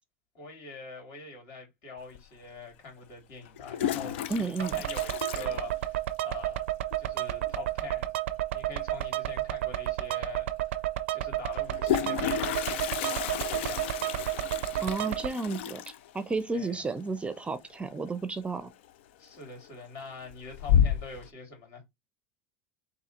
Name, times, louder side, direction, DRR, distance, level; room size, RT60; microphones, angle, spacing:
voice 1, 0.3-6.6 7.0-8.1 8.5-10.8 11.1-14.1 16.5-16.8 19.2-21.8, left 4 dB, 55° left, 2.9 m, -44 dB
Toilet flush, 2.1-2.2 3.4-6.3 6.5-6.6 6.9-7.0 7.3-7.7 9.4-9.5 9.8-9.9 11.5-18.2 18.5-18.9 19.3-19.9 20.3-21.3, left 9 dB, 75° left, 0.4 m, -31 dB
voice 2, 4.3-4.8 14.8-18.7, right 3 dB, 20° right, 0.5 m, -32 dB
sound 1, 4.6-15.3, right 14 dB, 80° right, 0.4 m, -32 dB
4.1 x 2.7 x 3.9 m
hypercardioid pair, 90°, 6 cm